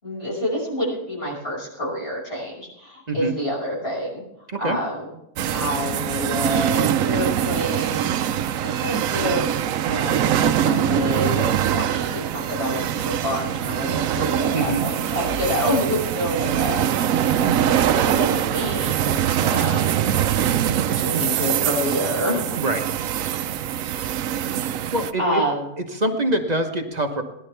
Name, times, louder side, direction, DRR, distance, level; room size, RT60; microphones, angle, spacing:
voice 1, 0.0-4.2 4.6-5.1 5.5-9.5 9.8-16.8 17.5-19.9 20.9-22.4 25.2-25.6, left 1 dB, 40° left, -4 dB, 6.2 m, -28 dB
sound 1, 5.4-25.1, right 10 dB, 70° right, 1.0 m, -23 dB
voice 2, 14.5-14.9 22.6-22.8 24.9-25.4 25.8-27.2, right 1 dB, 30° right, 4 dB, 1.1 m, -24 dB
20.0 x 11.0 x 3.4 m, 0.84 s
omnidirectional pair, 1.6 m